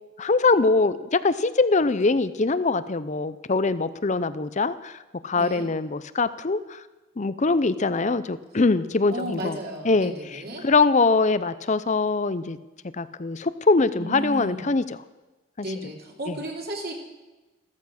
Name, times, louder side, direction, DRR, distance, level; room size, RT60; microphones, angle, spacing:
voice 1, 0.2-5.0 5.2-6.8 7.2-9.6 9.8-12.6 13.0-14.8 15.6-15.7 16.3-16.4, left 3 dB, 35° left, 15 dB, 0.6 m, -23 dB
voice 2, 5.3-5.7 9.1-10.7 13.9-14.6 15.6-16.9, right 1 dB, 45° right, 0 dB, 2.9 m, -34 dB
15.0 x 14.0 x 6.4 m, 1.1 s
head